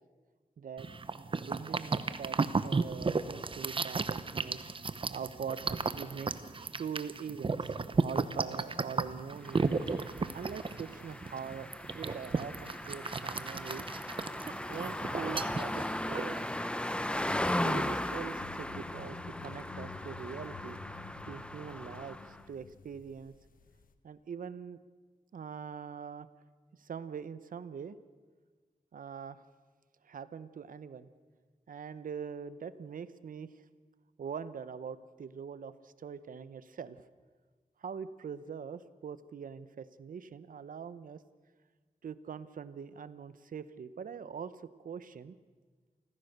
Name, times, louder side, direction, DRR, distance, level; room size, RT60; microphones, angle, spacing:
voice 1, 0.6-0.9 1.4-2.4 2.6-4.6 5.1-9.6 10.3-13.9 14.7-16.4 17.6-20.8 21.2-23.3 24.0-24.8 25.3-26.3 26.8-28.0 28.9-29.4 30.0-31.1 31.7-33.5 34.2-37.0 37.8-41.2 42.0-44.5 44.8-45.4, right 7 dB, 80° right, 14 dB, 0.9 m, -43 dB
sound 1, 0.8-16.6, right 4 dB, 40° right, 0.9 m, -34 dB
sound 2, 9.4-22.4, left 1 dB, 5° left, 0.9 m, -37 dB
sound 3, 18.4-23.9, left 5 dB, 90° left, 1.4 m, -49 dB
28.0 x 15.5 x 6.7 m, 1.4 s
wide cardioid pair, 115°, 14 cm